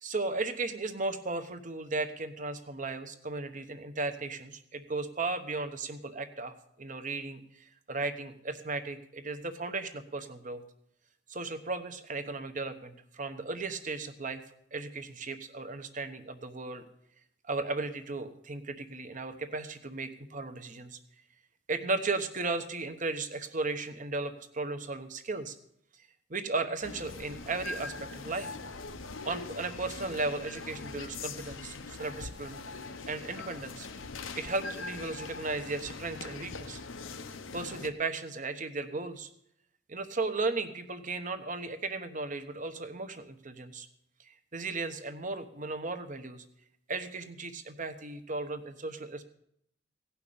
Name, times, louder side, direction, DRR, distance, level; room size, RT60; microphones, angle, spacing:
voice 1, 0.0-10.6 11.3-14.4 14.7-16.8 17.5-21.0 21.7-25.6 26.3-28.6 29.2-32.6 33.1-33.9 34.3-36.8 37.5-39.3 39.9-43.9 44.2-46.4 46.9-49.2, right 3 dB, 40° right, 8 dB, 1.1 m, -35 dB
sound 1, 26.8-37.9, left 3 dB, 90° left, 0.9 m, -42 dB
17.0 x 5.8 x 8.6 m, 0.73 s
head